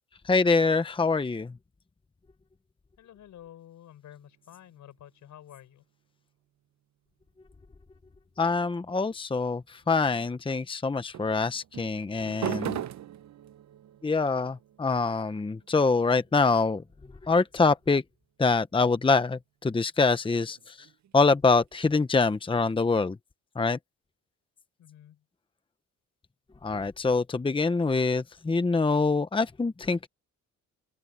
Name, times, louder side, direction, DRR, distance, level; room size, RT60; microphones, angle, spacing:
voice 1, 0.2-1.5 8.4-12.8 14.0-16.8 17.2-18.0 18.4-20.9 21.1-23.2 23.5-23.8 26.6-30.1, left 4 dB, 15° left, 0.9 m, -25 dB
voice 2, 3.0-5.8 24.8-25.2, left 11 dB, 75° left, 6.1 m, -50 dB
sound 1, 4.1-6.0 9.5-10.1 11.1-17.9 19.7-22.7, right 11 dB, 65° right, 1.0 m, -42 dB
open air
cardioid pair, 90°, 30 cm